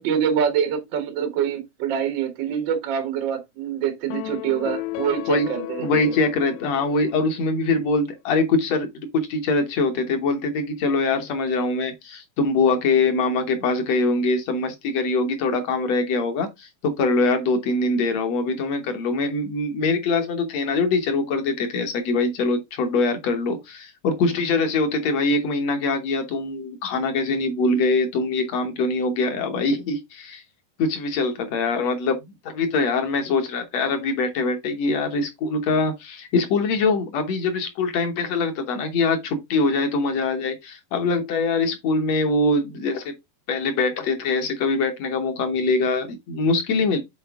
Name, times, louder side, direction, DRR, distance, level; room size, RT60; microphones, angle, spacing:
voice 1, 0.0-6.0, right 8 dB, 85° right, 1.0 m, -25 dB
sound 1, 4.1-7.6, left 17 dB, 90° left, 2.5 m, -34 dB
voice 2, 5.8-30.4 30.8-32.2 32.5-43.1 43.5-47.0, left 3 dB, 70° left, 1.6 m, -23 dB
7.7 x 4.3 x 3.5 m
omnidirectional pair, 4.3 m